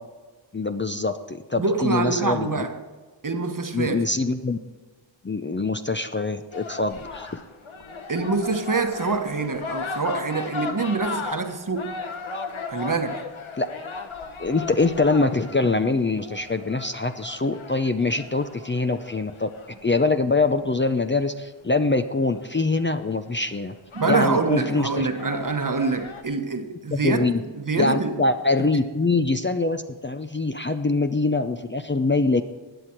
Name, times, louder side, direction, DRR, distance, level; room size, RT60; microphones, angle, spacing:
voice 1, 0.5-2.6 3.7-4.6 5.2-7.4 13.5-13.7 14.4-19.5 19.8-23.7 24.1-25.1 26.9-27.4 27.8-32.4, left 3 dB, 25° left, 0.6 m, -24 dB
voice 2, 1.6-2.8 3.2-4.1 8.1-12.0 12.7-13.2 23.9-27.3 27.5-28.2 28.6-28.8, right 4 dB, 40° right, 1.2 m, -25 dB
sound 1, 6.5-20.7 22.3-22.4 22.8-23.2 23.7-26.2, left 4 dB, 80° left, 1.2 m, -37 dB
16.0 x 9.8 x 4.5 m
wide cardioid pair, 65°, 47 cm